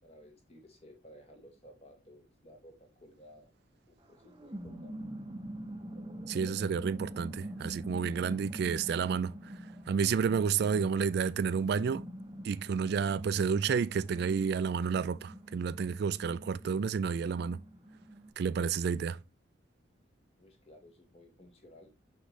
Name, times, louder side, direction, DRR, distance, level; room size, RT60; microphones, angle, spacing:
voice 1, 0.0-3.5 3.9-5.0 20.4-21.9, equal, 35° left, 2.2 m, -56 dB
sound 1, 4.0-18.3, right 1 dB, 25° right, 1.1 m, -45 dB
voice 2, 6.3-9.6 9.9-12.0 12.4-17.6 18.4-19.2, right 6 dB, 60° right, 0.3 m, -30 dB
6.4 x 5.7 x 3.2 m
head